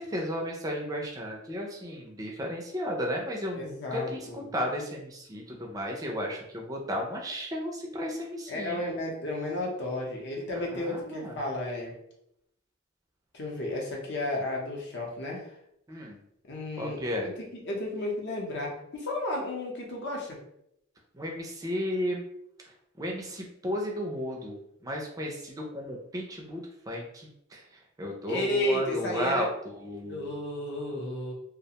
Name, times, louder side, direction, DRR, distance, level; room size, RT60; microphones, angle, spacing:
voice 1, 0.0-8.8 10.5-11.4 15.9-16.2 16.8-17.3 21.1-22.2 23.0-24.6 24.8-30.3, equal, 15° right, 0 dB, 0.4 m, -34 dB
voice 2, 3.5-4.5 8.5-12.0 13.3-15.5 16.5-20.4 28.3-29.5 30.1-31.3, left 1 dB, 60° left, -1 dB, 0.7 m, -33 dB
2.4 x 2.1 x 2.8 m, 0.77 s
head